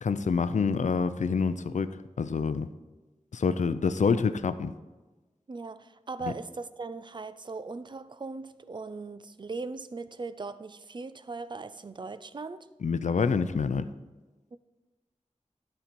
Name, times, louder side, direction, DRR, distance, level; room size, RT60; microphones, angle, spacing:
voice 1, 0.0-1.9 2.2-2.7 3.3-4.7 6.2-6.3 12.8-13.8, left 5 dB, 80° left, 0.5 m, -27 dB
voice 2, 5.5-12.6 14.5-14.6, right 3 dB, 40° right, 0.4 m, -39 dB
12.0 x 4.4 x 5.3 m
wide cardioid pair, 80°, 12 cm